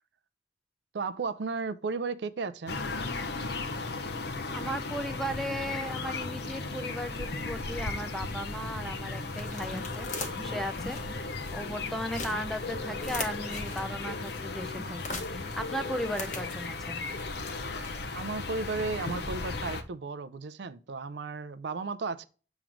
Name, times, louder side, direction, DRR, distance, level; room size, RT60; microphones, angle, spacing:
voice 1, 0.9-2.8 18.1-22.3, right 4 dB, 70° right, 0.5 m, -34 dB
sound 1, 2.7-19.8, left 3 dB, 60° left, 0.7 m, -36 dB
voice 2, 4.5-10.1 10.4-17.0, equal, ahead, 0.4 m, -36 dB
sound 2, 7.3-18.4, left 3 dB, 40° left, 1.1 m, -44 dB
sound 3, 8.8-15.6, left 1 dB, 20° left, 0.8 m, -48 dB
7.3 x 3.1 x 4.9 m
head